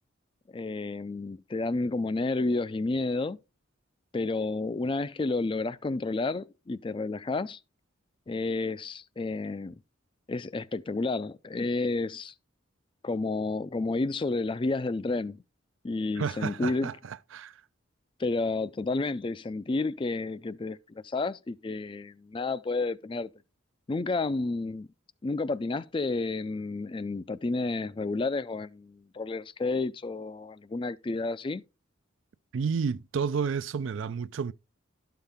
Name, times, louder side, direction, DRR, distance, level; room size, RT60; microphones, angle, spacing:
voice 1, 0.5-3.4 4.1-7.6 8.3-9.8 10.3-12.3 13.0-15.4 15.8-16.9 18.2-23.3 23.9-24.9 25.2-31.6, left 3 dB, 25° left, 0.3 m, -31 dB
voice 2, 16.2-17.6 32.5-34.5, right 6 dB, 70° right, 0.4 m, -31 dB
12.0 x 5.7 x 3.5 m
head